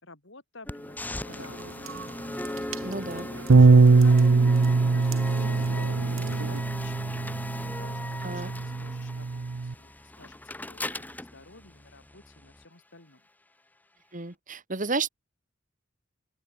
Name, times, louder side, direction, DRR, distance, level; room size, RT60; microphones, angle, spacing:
voice 1, 0.0-1.8 2.5-4.2 4.7-13.3, left 3 dB, 65° left, 5.7 m, -52 dB
sound 1, 0.7-12.6, left 1 dB, 10° left, 0.8 m, -39 dB
sound 2, 1.3-6.6, right 3 dB, 90° right, 1.8 m, -41 dB
voice 2, 2.8-3.3 8.2-8.5 14.1-15.1, right 3 dB, 40° right, 2.2 m, -32 dB
Bass guitar, 3.5-9.7, right 4 dB, 75° right, 0.6 m, -21 dB
open air
head